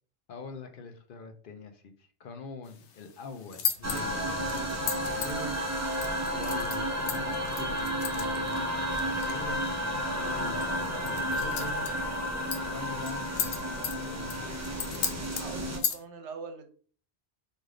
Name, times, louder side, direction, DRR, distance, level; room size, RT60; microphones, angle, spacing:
voice 1, 0.3-5.6 6.3-9.6 10.2-11.9 12.6-14.4, left 3 dB, 60° left, 6 dB, 0.7 m, -44 dB
sound 1, 2.7-16.0, left 8 dB, 85° left, 0.9 m, -38 dB
sound 2, 3.8-15.8, equal, 25° right, 0.3 m, -32 dB
voice 2, 15.4-16.6, right 5 dB, 90° right, 7 dB, 1.0 m, -42 dB
3.3 x 2.6 x 3.7 m, 0.42 s
omnidirectional pair, 1.1 m